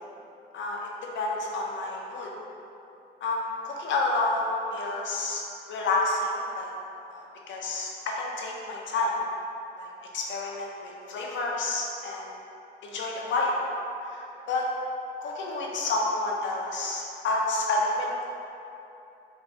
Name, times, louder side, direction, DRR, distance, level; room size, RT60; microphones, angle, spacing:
voice 1, 0.5-2.3 3.2-5.4 5.7-6.7 7.1-9.1 9.8-9.9 10.1-12.3 12.8-13.5 14.0-14.7 15.2-18.2, left 2 dB, 70° left, -2 dB, 0.7 m, -29 dB
5.5 x 2.2 x 2.8 m, 2.8 s
cardioid pair, 90°, 20 cm